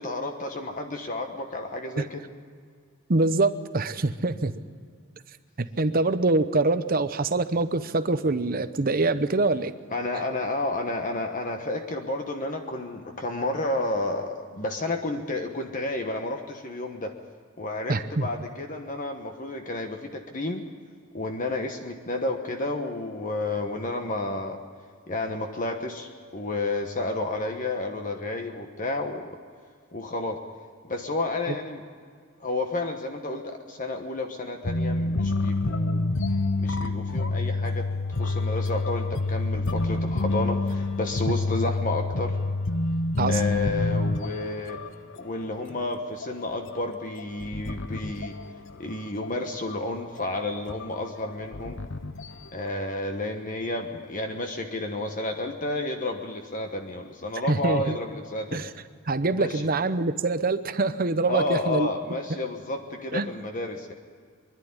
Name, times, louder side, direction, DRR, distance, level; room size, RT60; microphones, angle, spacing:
voice 1, 0.0-2.2 9.9-17.1 17.6-20.6 21.1-24.6 25.1-29.4 29.9-30.4 30.9-31.8 32.4-36.0 36.6-37.8 38.1-42.4 43.3-44.8 45.2-48.3 48.8-51.8 52.5-58.6 59.3-59.6 61.3-63.9, left 2 dB, 40° left, 4 dB, 1.2 m, -31 dB
voice 2, 3.1-4.6 5.6-9.7 17.9-18.3 43.2-43.4 57.5-58.0 58.5-58.7 59.1-61.9 63.1-63.3, right 3 dB, 45° right, 11 dB, 0.8 m, -24 dB
sound 1, 34.6-44.9 45.1-45.4 45.7-45.8 46.2-48.9 49.2-49.7 50.2-50.3 50.7-52.6, left 2 dB, 60° left, 0.9 m, -27 dB
24.5 x 11.0 x 9.8 m, 2.1 s
head